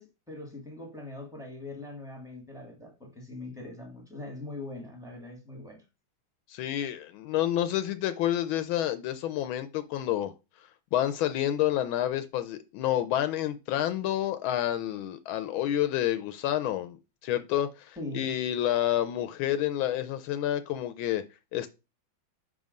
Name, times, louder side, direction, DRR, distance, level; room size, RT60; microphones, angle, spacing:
voice 1, 0.0-5.8 18.0-18.2, left 2 dB, ahead, 1.2 m, -41 dB
voice 2, 6.5-10.3 10.9-17.0 17.2-21.2 21.5-21.7, left 12 dB, 80° left, 1.3 m, -29 dB
6.1 x 3.7 x 5.1 m
omnidirectional pair, 2.3 m